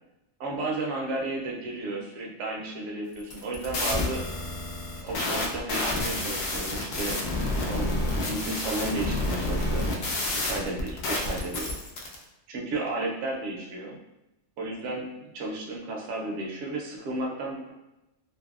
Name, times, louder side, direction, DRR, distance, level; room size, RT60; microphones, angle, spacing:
voice 1, 0.4-4.2 5.0-7.2 7.7-9.9 10.3-11.7 12.5-14.0 14.6-17.7, right 2 dB, 70° right, -1 dB, 0.8 m, -33 dB
sound 1, 3.2-12.2, left 2 dB, 65° left, 0.7 m, -29 dB
2.6 x 2.6 x 2.3 m, 0.96 s
omnidirectional pair, 1.4 m